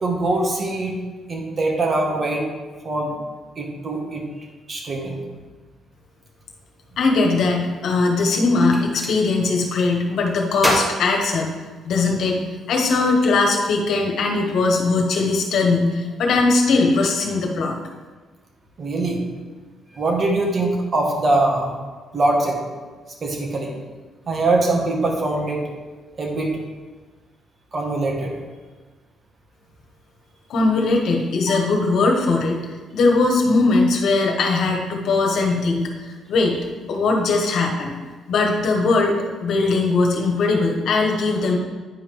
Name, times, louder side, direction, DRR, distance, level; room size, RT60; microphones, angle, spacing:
voice 1, 0.0-0.9 1.3-2.5 2.8-3.2 3.6-4.2 4.7-5.2 18.8-19.2 19.9-21.7 22.1-22.6 23.2-23.7 24.3-25.6 26.2-26.6 27.7-28.3 31.5-31.6, right 2 dB, 40° right, 1 dB, 1.7 m, -22 dB
voice 2, 7.0-11.5 11.8-12.4 12.7-17.7 30.5-32.6 32.9-35.9 36.3-36.6 36.9-37.9 38.3-39.1 39.4-41.6, left 3 dB, 70° left, 1 dB, 1.4 m, -20 dB
Gunshot gunfire, 8.7-9.2 10.6-12.1, equal, 5° right, 1.7 m, -26 dB
9.6 x 5.1 x 3.5 m, 1.3 s
cardioid pair, 90°, 0 cm